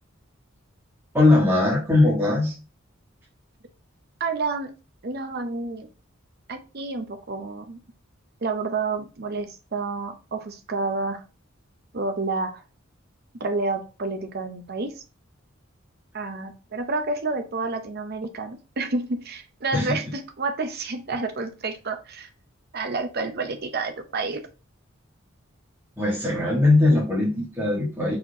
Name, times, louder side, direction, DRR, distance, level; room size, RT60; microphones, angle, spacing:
voice 1, 1.1-2.5 19.7-20.0 26.0-28.1, left 2 dB, 10° right, -7 dB, 1.4 m, -20 dB
voice 2, 4.2-4.7 5.0-5.9 6.5-7.8 8.4-11.2 11.9-12.6 13.4-14.9 16.1-22.3 22.7-24.4, right 3 dB, 50° right, 7 dB, 0.7 m, -29 dB
4.4 x 4.2 x 2.7 m, 0.32 s
head